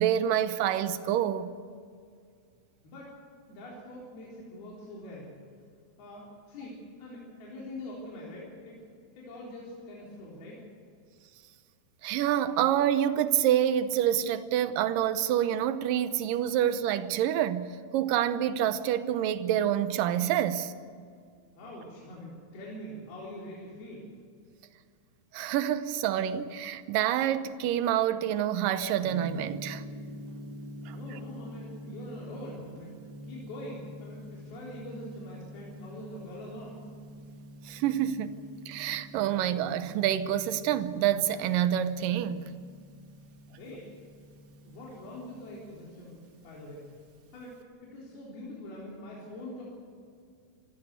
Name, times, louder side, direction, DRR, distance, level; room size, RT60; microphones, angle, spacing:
voice 1, 0.0-1.5 12.0-20.7 25.3-29.8 30.9-31.2 37.7-38.4 38.7-42.5, right 10 dB, 75° right, 2.2 m, -27 dB
voice 2, 3.5-5.4 6.0-8.8 9.2-10.6 21.6-24.1 30.9-32.9 33.3-36.8 43.5-43.9 44.6-46.9 47.3-49.6, left 1 dB, 70° left, 5.7 m, -44 dB
Gong, 29.0-47.6, equal, 55° right, 1.1 m, -46 dB
26.5 x 15.5 x 8.1 m
omnidirectional pair, 4.6 m